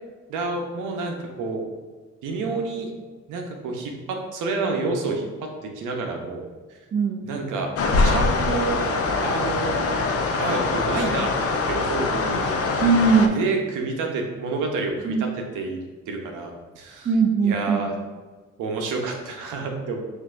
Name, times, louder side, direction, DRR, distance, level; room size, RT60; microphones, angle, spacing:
voice 1, 0.3-1.6 2.2-2.9 3.3-6.5 7.2-7.7 8.0-8.8 9.2-10.0 10.4-11.3 11.7-12.6 13.3-17.1 17.4-17.9 18.6-20.0, right 3 dB, 85° right, 2 dB, 0.8 m, -29 dB
voice 2, 6.9-7.2 12.8-13.4 15.0-15.2 17.1-17.8, right 4 dB, 30° right, 5 dB, 0.4 m, -20 dB
sound 1, 7.8-13.3, left 3 dB, 50° left, 0.5 m, -23 dB
6.3 x 2.7 x 2.5 m, 1.3 s
cardioid pair, 90°, 30 cm